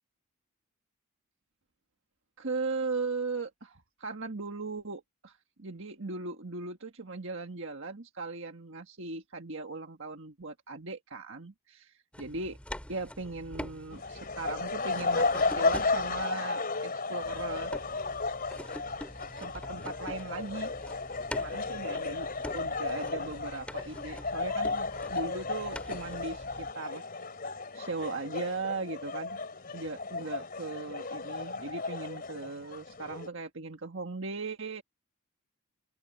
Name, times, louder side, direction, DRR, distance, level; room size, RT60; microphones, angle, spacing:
voice 1, 2.4-12.6 12.9-17.7 19.4-20.7 21.3-22.3 22.5-27.0 27.7-29.4 29.7-34.8, right 3 dB, 60° right, 1.6 m, -38 dB
sound 1, 12.1-16.2 17.2-26.7, equal, 5° left, 3.2 m, -45 dB
sound 2, 13.9-33.3, left 3 dB, 40° left, 3.7 m, -34 dB
open air
head